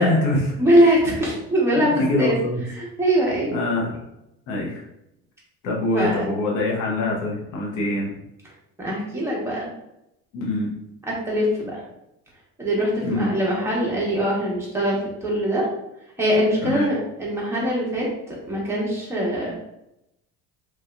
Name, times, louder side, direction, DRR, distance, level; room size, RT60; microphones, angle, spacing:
voice 1, 0.0-0.4 1.7-2.6 3.5-4.0 4.5-4.8 5.6-8.1 10.3-10.7 13.0-13.3 16.6-16.9, left 2 dB, 70° left, -3 dB, 0.8 m, -24 dB
voice 2, 0.6-2.4 2.7-3.5 5.9-6.2 8.8-9.7 11.3-11.8 12.6-15.7 16.2-19.5, equal, 10° right, -5 dB, 1.1 m, -22 dB
3.0 x 2.8 x 2.4 m, 0.84 s
cardioid pair, 130°, 32 cm